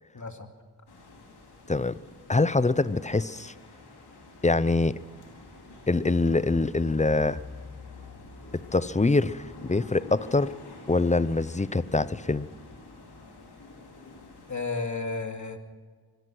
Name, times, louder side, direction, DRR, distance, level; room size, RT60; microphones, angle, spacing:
voice 1, 0.1-0.5 14.5-15.6, left 3 dB, 50° left, 5 dB, 2.5 m, -32 dB
sound 1, 0.9-14.5, left 3 dB, 85° left, 4.2 m, -47 dB
voice 2, 1.7-2.0 2.3-3.5 4.4-5.0 5.9-7.4 8.7-10.5 10.9-12.5, left 3 dB, 20° left, 17 dB, 0.7 m, -24 dB
24.0 x 17.5 x 6.2 m, 1.5 s
cardioid pair, 55°, 38 cm